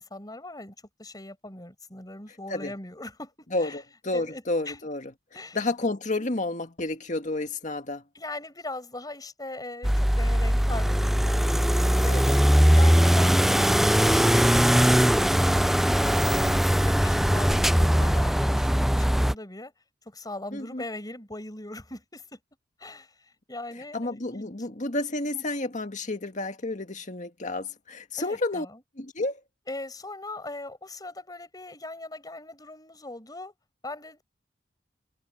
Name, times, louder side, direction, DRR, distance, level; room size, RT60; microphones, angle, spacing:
voice 1, 0.0-3.8 4.1-4.8 5.3-5.6 8.1-19.7 20.1-22.4 22.8-24.5 25.3-25.4 28.2-28.8 29.7-33.5 33.8-34.2, left 2 dB, 20° left, 5.4 m, -40 dB
voice 2, 3.5-5.1 5.5-8.0 12.1-12.4 17.8-18.2 20.5-20.8 23.9-28.7 29.0-29.4, left 2 dB, 45° left, 1.9 m, -31 dB
sound 1, 9.8-19.3, equal, ahead, 0.3 m, -21 dB
head